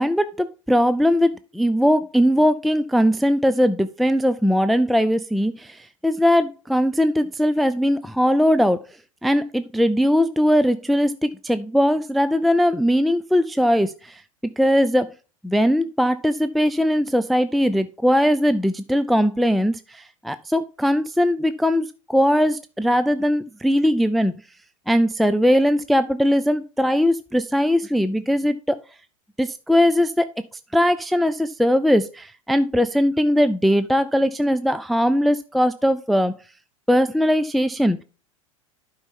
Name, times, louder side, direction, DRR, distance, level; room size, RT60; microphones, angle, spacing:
voice 1, 0.0-8.8 9.2-14.2 14.6-15.1 15.4-24.4 24.9-28.8 29.4-30.3 30.7-36.4 36.9-38.0, equal, ahead, 12 dB, 0.4 m, -20 dB
11.5 x 5.6 x 3.6 m, 0.34 s
figure-of-eight pair, 85°, 17 cm